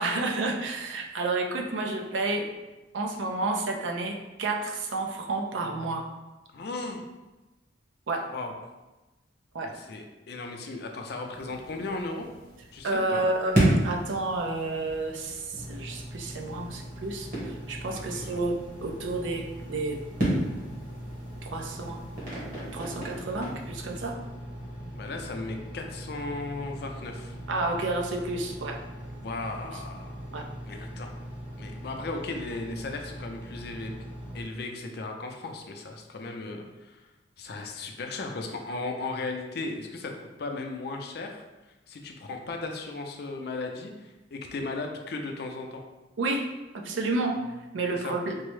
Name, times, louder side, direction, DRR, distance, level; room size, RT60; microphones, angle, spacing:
voice 1, 0.0-2.5 2.9-6.1 8.1-8.3 9.5-9.8 12.8-20.0 21.4-22.0 22.7-24.2 27.5-28.8 29.6-29.7 30.3-30.5 46.2-46.5 46.7-48.4, right 2 dB, 80° right, 2 dB, 0.5 m, -30 dB
voice 2, 6.5-7.0 8.3-8.5 9.6-12.3 12.7-13.2 17.9-18.4 24.9-27.4 29.2-30.2 30.7-31.1 31.6-33.9 34.3-37.1 37.4-40.1 40.4-41.4 41.9-45.8 47.9-48.2, left 3 dB, 55° left, 3 dB, 0.4 m, -36 dB
sound 1, 11.3-24.0, right 1 dB, 45° right, 1.2 m, -33 dB
Engine, 15.5-34.4, equal, 25° right, 0.9 m, -41 dB
4.4 x 2.0 x 3.1 m, 1.1 s
head